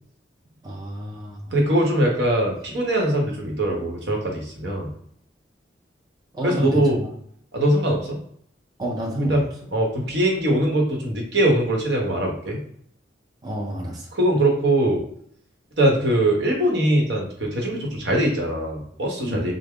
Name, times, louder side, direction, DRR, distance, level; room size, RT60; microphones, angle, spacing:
voice 1, 0.6-1.5 6.3-7.1 8.8-9.4 13.4-14.1 19.2-19.5, right 1 dB, 20° right, -3 dB, 0.6 m, -29 dB
voice 2, 1.5-4.9 6.4-7.0 7.5-8.2 9.2-9.4 9.7-12.6 14.1-15.0 15.8-19.5, right 1 dB, 75° right, 0 dB, 0.9 m, -22 dB
3.4 x 2.0 x 3.6 m, 0.67 s
head